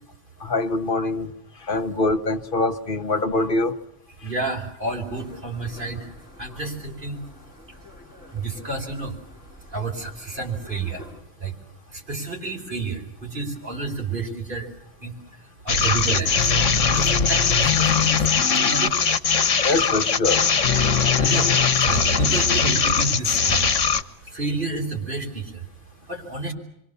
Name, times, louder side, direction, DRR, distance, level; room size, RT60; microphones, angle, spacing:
voice 1, 0.4-1.3 1.6-3.8 19.6-20.5, left 2 dB, 45° left, 5 dB, 1.4 m, -24 dB
voice 2, 4.2-6.1 6.4-7.2 7.7-7.8 8.3-9.2 9.7-11.1 11.4-11.6 11.9-14.7 15.0-18.9 21.2-21.5 21.8-23.7 24.2-25.7 26.1-26.5, right 3 dB, 45° right, 0 dB, 5.2 m, -30 dB
sound 1, 4.8-11.2, left 1 dB, 5° right, 5.5 m, -47 dB
sound 2, 15.7-24.0, left 5 dB, 85° left, 1.5 m, -20 dB
27.0 x 24.0 x 7.0 m, 0.78 s
omnidirectional pair, 1.2 m